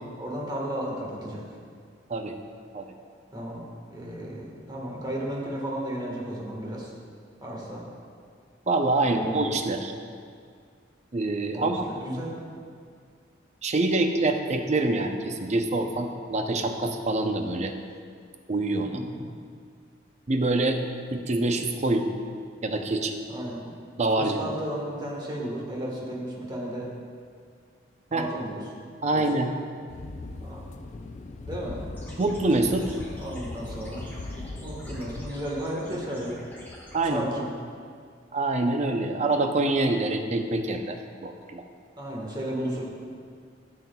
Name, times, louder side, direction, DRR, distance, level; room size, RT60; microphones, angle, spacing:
voice 1, 0.2-1.4 3.3-3.6 3.9-6.9 7.4-7.8 9.0-9.6 11.5-12.4 18.8-19.3 23.3-23.7 24.2-26.9 28.1-28.6 29.1-29.5 30.4-30.6 31.5-31.8 33.2-34.1 34.6-36.4 37.0-37.5 42.0-42.8, right 1 dB, 20° right, -3 dB, 1.4 m, -34 dB
voice 2, 8.7-9.9 11.1-11.9 13.6-17.7 18.5-19.0 20.3-20.8 21.1-22.1 22.6-23.2 24.0-24.5 28.1-28.3 29.0-29.5 32.2-33.0 36.9-37.3 38.3-41.0 41.2-41.6, right 2 dB, 35° right, 5 dB, 0.5 m, -25 dB
sound 1, 29.9-35.3, left 2 dB, 40° left, 0.4 m, -39 dB
sound 2, 31.9-37.0, equal, 10° left, 1.4 m, -47 dB
13.0 x 6.0 x 2.3 m, 2.1 s
head